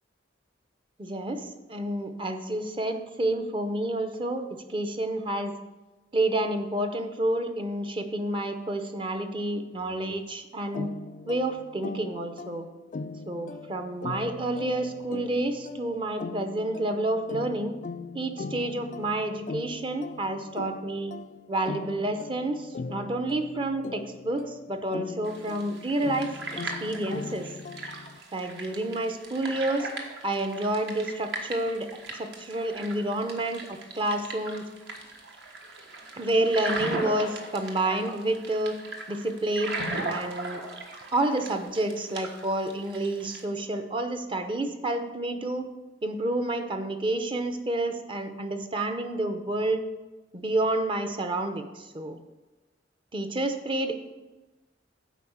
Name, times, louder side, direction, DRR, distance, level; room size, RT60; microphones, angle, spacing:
voice 1, 1.0-5.5 6.1-10.9 11.3-12.7 13.3-17.7 18.1-21.1 21.5-26.3 26.8-27.5 28.3-29.9 30.2-34.6 36.2-38.8 39.1-39.8 40.1-40.6 41.1-45.7 46.0-49.8 50.3-52.2 53.1-54.0, right 1 dB, 30° right, 7 dB, 0.7 m, -29 dB
sound 1, 10.7-28.2, left 3 dB, 45° left, 0.3 m, -40 dB
sound 2, 25.2-43.4, right 2 dB, 65° right, 1.4 m, -38 dB
8.3 x 4.9 x 7.1 m, 1.1 s
head